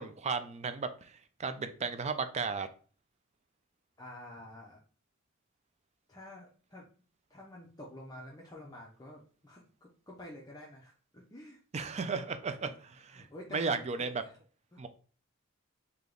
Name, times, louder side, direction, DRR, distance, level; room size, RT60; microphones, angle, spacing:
voice 1, 0.0-2.7 11.7-12.7 13.1-13.3 13.5-14.1 14.8-14.9, right 5 dB, 30° right, 0.4 m, -34 dB
voice 2, 4.0-4.8 6.1-6.9 7.3-11.6 12.6-12.8 13.1-14.4 14.7-14.8, left 1 dB, 20° left, 0.6 m, -49 dB
3.5 x 2.9 x 3.8 m
head